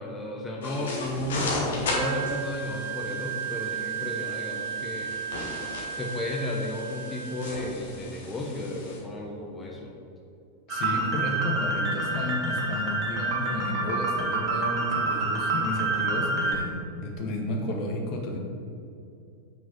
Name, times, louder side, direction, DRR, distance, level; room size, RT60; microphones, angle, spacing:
voice 1, 0.0-5.4 5.9-9.9, left 1 dB, 15° left, -2 dB, 0.9 m, -33 dB
sound 1, 0.6-9.0, left 2 dB, 60° left, 1.6 m, -36 dB
Wind instrument woodwind instrument, 1.9-7.7, right 8 dB, 80° right, 0.4 m, -35 dB
voice 2, 10.7-18.4, left 1 dB, 40° left, 1 dB, 1.1 m, -32 dB
sound 2, 10.7-16.5, right 3 dB, 35° right, 1.6 m, -28 dB
5.9 x 4.8 x 6.0 m, 2.6 s
figure-of-eight pair, 90°, 0 cm